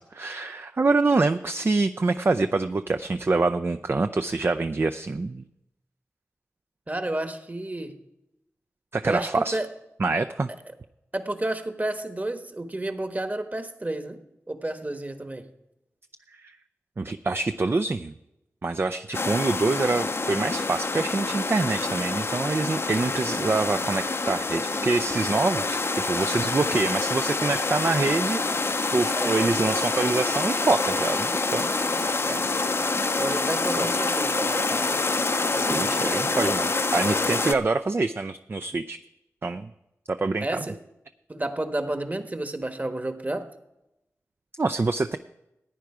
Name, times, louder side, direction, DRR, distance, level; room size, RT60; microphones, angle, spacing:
voice 1, 0.1-5.4 8.9-9.6 10.0-10.5 16.4-16.6 17.0-18.1 18.6-28.4 28.9-31.8 33.8-34.0 35.7-39.0 39.4-39.7 40.1-40.7 44.6-45.2, right 3 dB, 45° right, 9 dB, 0.4 m, -25 dB
voice 2, 6.9-7.9 9.1-9.7 11.1-14.2 14.5-15.5 29.1-29.4 32.3-32.5 33.2-35.0 35.5-36.5 40.4-40.7 41.3-43.5, right 1 dB, 30° right, 8 dB, 1.3 m, -31 dB
sound 1, 19.1-37.5, left 3 dB, 50° left, 0.6 m, -26 dB
15.0 x 9.3 x 4.9 m, 0.89 s
cardioid pair, 40°, 5 cm